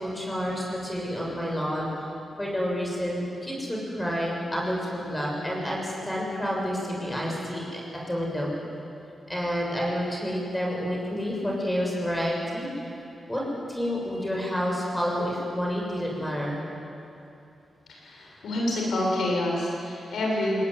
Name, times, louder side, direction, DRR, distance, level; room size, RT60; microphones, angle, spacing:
voice 1, 0.0-1.9 2.4-7.8 8.1-8.5 9.3-12.7 13.3-13.4 13.7-16.6, equal, 10° left, -3 dB, 7.0 m, -29 dB
voice 2, 17.9-20.6, left 1 dB, 85° left, -2 dB, 7.8 m, -27 dB
21.0 x 20.5 x 9.7 m, 2.7 s
cardioid pair, 70°, 0 cm